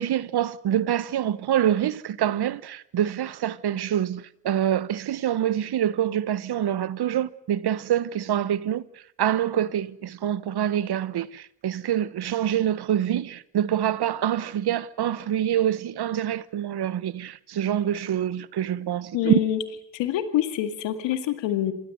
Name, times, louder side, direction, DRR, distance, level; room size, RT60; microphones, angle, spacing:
voice 1, 0.0-8.8 9.2-19.4, right 10 dB, 60° right, 1.1 m, -26 dB
voice 2, 19.1-19.6 19.9-21.7, left 11 dB, 85° left, 2.1 m, -25 dB
27.0 x 18.5 x 7.9 m
hypercardioid pair, 45°, 43 cm